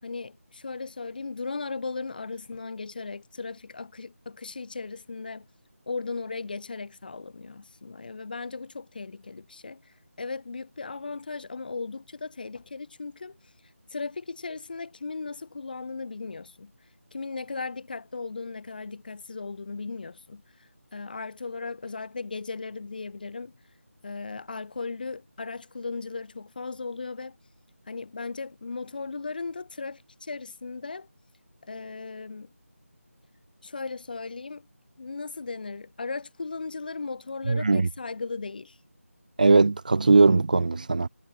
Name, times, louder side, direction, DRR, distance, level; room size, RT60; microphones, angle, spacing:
voice 1, 0.0-5.5 5.9-13.5 13.9-16.7 17.1-23.6 24.0-27.4 27.9-31.1 31.6-32.5 33.6-34.7 35.0-38.8, left 4 dB, 35° left, 3.6 m, -37 dB
voice 2, 37.5-37.9 39.4-41.1, right 3 dB, 35° right, 0.5 m, -19 dB
figure-of-eight pair, 170°, 8 cm